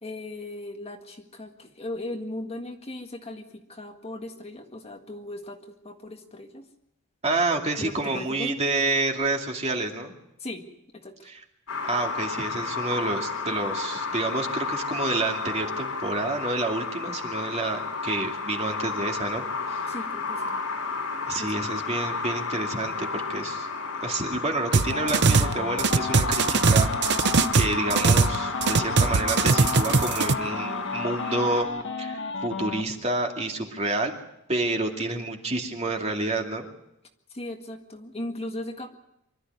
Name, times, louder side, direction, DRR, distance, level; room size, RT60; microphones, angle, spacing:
voice 1, 0.0-6.6 7.8-8.6 10.4-10.7 10.9-11.1 19.9-20.6 21.4-21.5 37.3-38.9, left 1 dB, 25° left, 3 dB, 1.8 m, -37 dB
voice 2, 7.2-10.1 11.2-11.4 11.9-19.8 21.3-23.7 24.0-26.9 27.5-31.7 32.0-34.1 34.5-36.6, right 2 dB, 30° right, 2 dB, 2.4 m, -29 dB
sound 1, 11.7-31.6, left 4 dB, 90° left, 4.9 m, -32 dB
sound 2, 24.7-25.5 25.8-28.4 28.6-30.3, right 4 dB, 50° right, 0.8 m, -21 dB
sound 3, 24.8-32.8, left 3 dB, 55° left, 1.7 m, -33 dB
25.0 x 13.0 x 9.5 m, 0.83 s
head